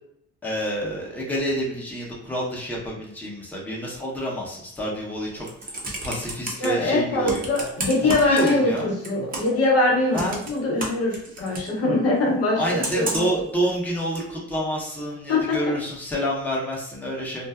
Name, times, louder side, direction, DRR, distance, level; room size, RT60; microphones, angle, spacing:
voice 1, 0.4-5.7 6.0-7.4 8.0-8.9 10.1-10.4 12.6-17.5, equal, 5° left, -4 dB, 0.8 m, -28 dB
Computer keyboard, 5.2-6.7 7.2-8.8 9.0-9.6 10.1-11.7 12.8-13.4 14.1-14.2, right 2 dB, 30° right, 0.6 m, -31 dB
voice 2, 6.6-13.2 15.3-15.6, left 2 dB, 55° left, -2 dB, 0.7 m, -23 dB
2.5 x 2.1 x 2.2 m, 0.72 s
cardioid pair, 90°, 30 cm